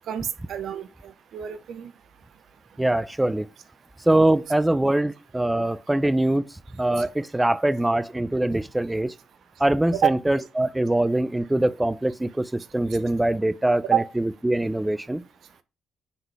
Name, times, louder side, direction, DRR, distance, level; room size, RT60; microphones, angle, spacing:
voice 1, 0.1-1.9 7.0-7.1 9.9-10.1 13.9-14.1, right 9 dB, 65° right, 0.7 m, -27 dB
voice 2, 2.8-3.4 4.1-6.4 6.8-9.1 9.6-15.2, right 1 dB, 15° right, 0.6 m, -23 dB
9.6 x 4.0 x 3.3 m
hypercardioid pair, 50°, 0 cm